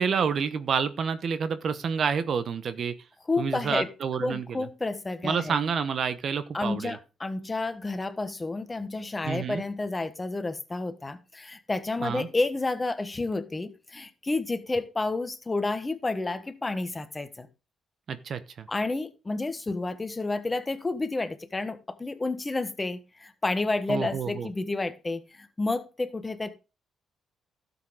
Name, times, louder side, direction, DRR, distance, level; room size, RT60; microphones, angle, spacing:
voice 1, 0.0-2.9 3.4-4.6 5.2-7.0 9.2-9.6 12.0-12.3 18.1-18.7 23.9-24.5, right 6 dB, 55° right, 1.0 m, -28 dB
voice 2, 3.3-3.9 4.2-5.6 6.5-17.5 18.7-26.5, left 2 dB, 20° left, 1.3 m, -30 dB
12.5 x 7.1 x 3.8 m
cardioid pair, 90°, 0 cm